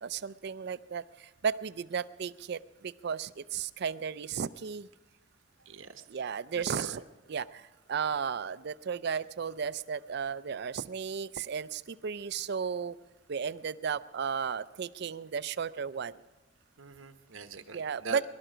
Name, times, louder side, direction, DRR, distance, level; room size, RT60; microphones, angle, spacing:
voice 1, 0.0-4.9 6.1-7.0 7.3-13.0 13.3-16.1 17.7-18.2, right 6 dB, 55° right, 17 dB, 0.4 m, -34 dB
voice 2, 5.7-6.0 6.6-7.0 16.8-18.2, right 4 dB, 80° right, 9 dB, 1.0 m, -43 dB
22.5 x 12.5 x 5.0 m, 1.2 s
head